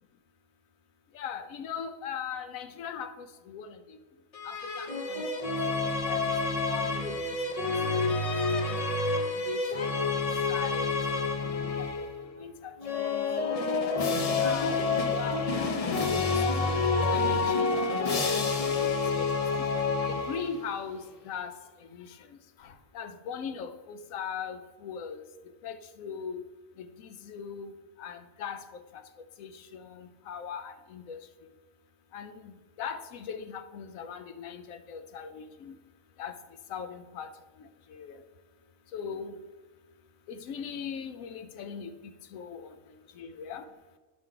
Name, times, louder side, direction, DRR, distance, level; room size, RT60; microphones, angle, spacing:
voice 1, 1.1-4.0 4.4-5.2 6.1-6.2 6.7-7.4 7.6-8.1 8.6-8.8 9.5-10.1 10.5-11.0 11.4-12.1 12.4-12.7 13.6-13.7 14.4-15.4 15.9-16.8 17.1-18.5 19.1-19.3 20.1-21.6 22.0-22.1 22.6-25.2 25.6-26.4 26.8-27.7 28.0-28.8 29.4-31.2 32.1-32.5 32.8-35.7 36.2-36.4 36.7-37.3 37.9-38.2 38.9-39.3 40.3-41.9 42.3-42.7 43.2-43.6, left 7 dB, 90° left, 10 dB, 1.0 m, -39 dB
sound 1, 4.3-12.2 12.8-20.7, left 4 dB, 50° left, 0.4 m, -28 dB
9.9 x 3.7 x 4.5 m, 1.3 s
omnidirectional pair, 1.4 m